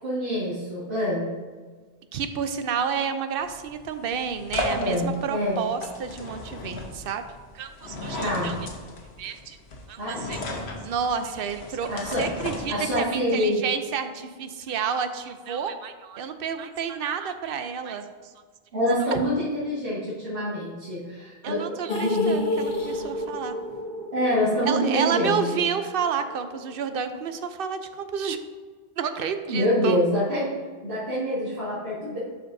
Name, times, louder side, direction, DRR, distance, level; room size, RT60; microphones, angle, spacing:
voice 1, 0.0-1.3 4.7-5.6 8.2-8.5 10.0-10.2 11.9-12.3 12.7-13.6 18.7-21.7 24.1-25.7 29.5-30.5 30.8-32.2, equal, 90° right, -11 dB, 2.1 m, -26 dB
voice 2, 2.1-7.2 7.5-8.6 9.2-9.6 9.9-10.4 10.8-11.9 12.2-18.0 19.1-19.2 21.4-23.6 24.7-28.4 29.0-30.0, right 7 dB, 65° right, 9 dB, 0.8 m, -30 dB
sound 1, 3.4-13.2, left 2 dB, 85° left, 1.2 m, -35 dB
sound 2, 21.9-26.0 26.3-26.4 26.8-26.9, left 2 dB, 60° left, 1.1 m, -29 dB
11.5 x 5.1 x 2.6 m, 1.5 s
omnidirectional pair, 1.1 m